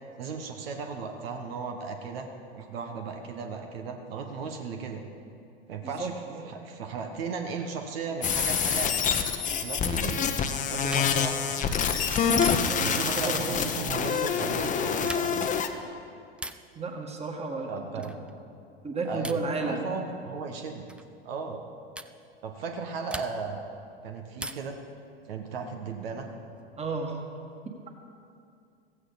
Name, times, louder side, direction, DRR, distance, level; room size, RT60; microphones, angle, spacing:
voice 1, 0.2-5.0 5.7-8.9 9.4-10.3 10.7-11.6 12.4-15.5 17.7-18.2 19.0-20.9 21.2-21.6 22.4-23.6 24.0-24.8 25.2-26.3, right 5 dB, 70° right, 4 dB, 1.4 m, -36 dB
voice 2, 5.8-6.5 12.5-13.4 16.8-17.7 18.8-19.9 26.8-27.2, right 3 dB, 20° right, 2 dB, 1.9 m, -33 dB
sound 1, 8.2-15.7, left 7 dB, 25° left, 0.9 m, -26 dB
sound 2, 10.9-11.4 12.4-13.0 14.9-15.6 16.4-16.8 18.0-18.3 19.2-19.6 20.9-21.1 22.0-22.2 23.1-23.6 24.4-24.9 26.3-27.0, right 2 dB, 5° right, 0.3 m, -41 dB
15.5 x 15.0 x 4.1 m, 2.4 s
hypercardioid pair, 95°, 31 cm